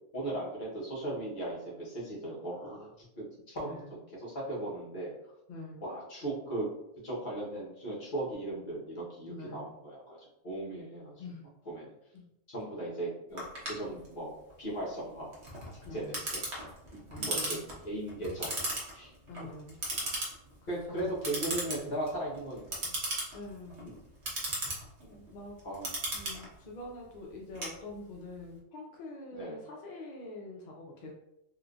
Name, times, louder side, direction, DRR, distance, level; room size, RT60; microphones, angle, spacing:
voice 1, 0.1-2.9 3.2-3.8 4.1-5.1 5.8-6.7 7.0-11.1 11.7-11.9 12.5-14.3 14.6-15.3 15.7-16.4 16.9-17.6 17.8-19.1 20.7-22.9 25.6-25.9 29.3-29.6, right 1 dB, 40° left, -5 dB, 1.1 m, -37 dB
voice 2, 3.6-3.9 5.5-5.8 9.3-9.7 11.2-11.4 12.1-12.3 15.8-16.2 17.1-17.7 19.3-19.8 20.6-21.2 23.3-23.9 25.0-25.6 26.1-31.1, left 2 dB, 70° left, -1 dB, 0.4 m, -45 dB
Clock, 13.4-28.3, right 1 dB, 55° right, 1.1 m, -38 dB
3.6 x 2.5 x 2.4 m, 0.83 s
omnidirectional pair, 1.4 m